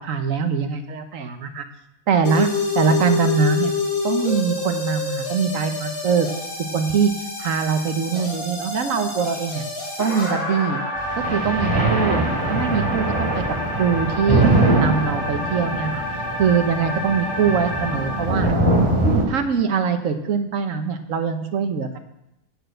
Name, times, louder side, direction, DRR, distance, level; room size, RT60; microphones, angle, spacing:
voice 1, 0.0-1.6 2.1-3.7 4.0-6.3 6.7-7.1 7.4-9.6 10.0-10.8 11.1-13.4 13.8-14.5 14.7-16.0 16.4-18.5 19.3-22.0, right 6 dB, 70° right, 7 dB, 1.3 m, -22 dB
sound 1, 2.2-18.2, left 3 dB, 85° left, 3.5 m, -28 dB
sound 2, 11.0-19.2, right 2 dB, 15° right, 3.0 m, -22 dB
9.0 x 6.6 x 7.8 m, 0.87 s
omnidirectional pair, 1.4 m